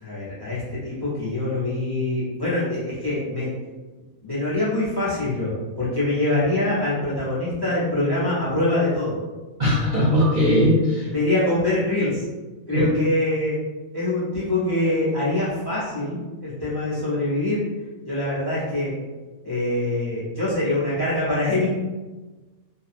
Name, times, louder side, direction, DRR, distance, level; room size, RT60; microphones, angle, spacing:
voice 1, 0.0-3.5 4.2-5.5 5.8-9.1 11.0-12.2 12.7-13.6 13.9-17.6 18.0-18.9 19.4-21.7, left 1 dB, 20° left, -10 dB, 0.7 m, -24 dB
voice 2, 9.6-11.1 12.7-12.9, left 1 dB, 50° right, -9 dB, 0.6 m, -19 dB
2.6 x 2.3 x 2.5 m, 1.2 s
omnidirectional pair, 1.5 m